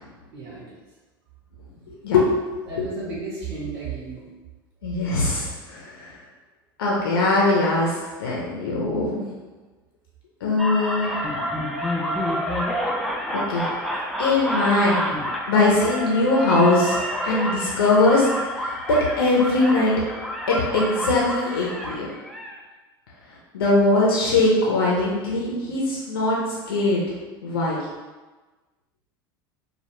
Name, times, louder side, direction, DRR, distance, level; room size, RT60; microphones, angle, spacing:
voice 1, 0.3-0.8 2.7-4.3, right 4 dB, 55° right, -8 dB, 0.8 m, -33 dB
voice 2, 1.9-2.3 2.8-2.9 4.8-6.1 6.8-9.2 10.4-11.1 13.3-13.7 14.2-15.1 15.5-18.3 18.6-19.9 20.5-22.1 23.5-27.0 27.4-27.9, left 2 dB, 80° left, -4 dB, 0.5 m, -21 dB
sound 1, 10.6-22.6, equal, ahead, 0.3 m, -28 dB
2.2 x 2.1 x 2.9 m, 1.2 s
hypercardioid pair, 80°, 12 cm